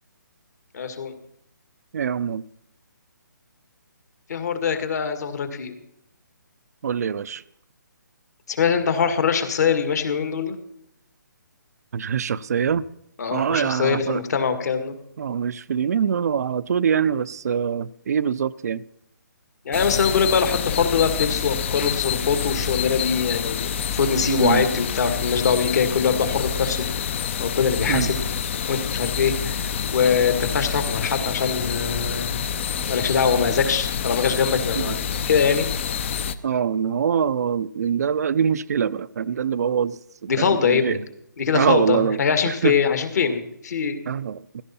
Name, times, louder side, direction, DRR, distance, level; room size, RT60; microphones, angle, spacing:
voice 1, 0.7-1.1 4.3-5.7 8.5-10.6 13.2-15.0 19.7-26.9 27.4-28.2 28.7-29.6 29.9-32.4 32.9-35.7 40.3-41.0 41.4-44.0, left 6 dB, 55° left, 2.0 m, -23 dB
voice 2, 1.9-2.4 6.8-7.4 11.9-12.8 13.3-14.2 15.2-18.8 24.4-24.6 27.9-28.1 34.7-35.0 36.4-41.0 41.5-42.2 42.5-42.7 44.1-44.6, right 7 dB, 50° right, 0.5 m, -24 dB
sound 1, 19.7-36.4, left 7 dB, 35° left, 0.7 m, -27 dB
15.5 x 13.5 x 4.3 m
figure-of-eight pair, 150°, 11 cm